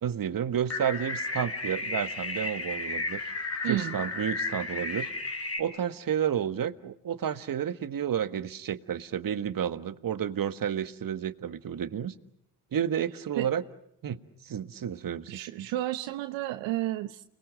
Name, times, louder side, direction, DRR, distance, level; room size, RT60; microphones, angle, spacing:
voice 1, 0.0-3.3 3.6-5.1 5.6-12.1 12.7-13.6 14.0-15.7, right 9 dB, 45° right, 11 dB, 1.5 m, -31 dB
sound 1, 0.7-5.6, left 3 dB, 30° left, 4.2 m, -33 dB
voice 2, 3.6-4.0 13.4-13.5 15.3-17.2, right 15 dB, 75° right, 10 dB, 1.0 m, -31 dB
30.0 x 21.0 x 7.6 m, 0.75 s
hypercardioid pair, 55°, 45 cm